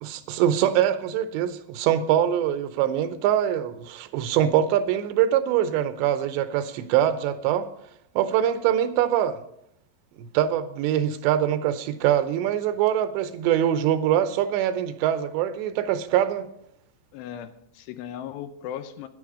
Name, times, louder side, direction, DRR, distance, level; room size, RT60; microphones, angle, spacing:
voice 1, 0.0-7.7 8.2-9.4 10.2-16.5, right 10 dB, 85° right, 11 dB, 2.9 m, -23 dB
voice 2, 17.1-19.1, left 10 dB, 80° left, 10 dB, 2.7 m, -37 dB
12.0 x 10.0 x 4.9 m, 0.73 s
omnidirectional pair, 5.2 m